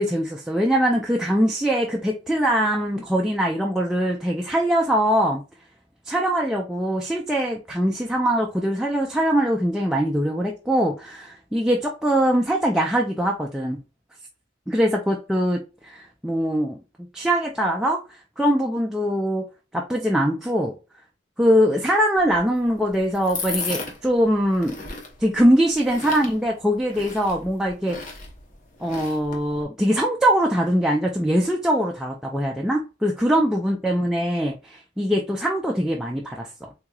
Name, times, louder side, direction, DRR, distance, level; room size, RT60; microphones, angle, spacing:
voice 1, 0.0-5.4 6.1-13.8 14.7-16.8 17.1-18.0 18.4-19.4 19.7-20.7 21.4-24.8 25.2-28.0 28.8-36.7, equal, 5° right, 0.3 m, -22 dB
sound 1, 22.2-29.6, left 4 dB, 40° left, 0.8 m, -36 dB
3.6 x 2.9 x 2.3 m
head